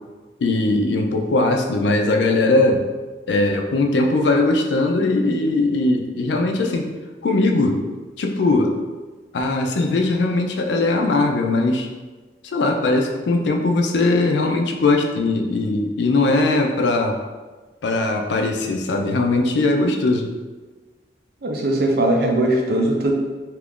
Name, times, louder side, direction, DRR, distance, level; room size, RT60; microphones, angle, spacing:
voice 1, 0.4-2.8 3.3-6.9 7.2-7.8 8.2-8.7 9.3-11.9 12.4-17.2 17.8-20.3, left 2 dB, 75° left, 3 dB, 0.4 m, -20 dB
voice 2, 21.4-23.1, right 1 dB, 60° right, 1 dB, 0.5 m, -19 dB
2.9 x 2.4 x 3.6 m, 1.3 s
head